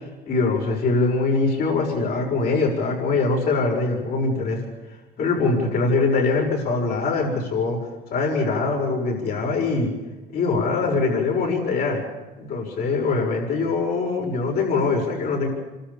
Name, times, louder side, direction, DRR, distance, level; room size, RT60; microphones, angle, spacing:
voice 1, 0.2-4.6 5.2-7.8 8.1-9.9 10.3-12.0 12.4-15.5, left 3 dB, 70° left, -1 dB, 6.9 m, -23 dB
28.5 x 13.0 x 7.3 m, 1.1 s
cardioid pair, 110°, 17 cm